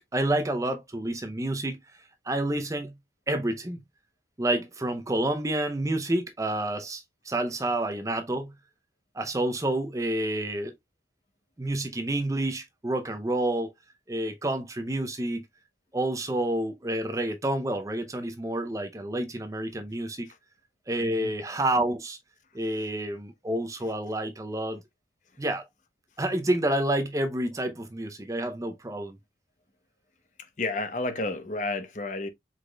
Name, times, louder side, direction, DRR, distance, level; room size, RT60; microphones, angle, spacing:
voice 1, 0.0-1.8 2.3-3.0 3.3-3.8 4.4-8.5 9.1-10.7 11.6-13.7 14.1-15.5 15.9-20.3 20.9-22.2 22.5-24.8 25.4-25.7 26.2-29.2, right 1 dB, 20° right, 0.5 m, -29 dB
voice 2, 21.0-21.3 30.6-32.3, left 2 dB, 45° left, 0.8 m, -31 dB
4.9 x 4.1 x 2.2 m
head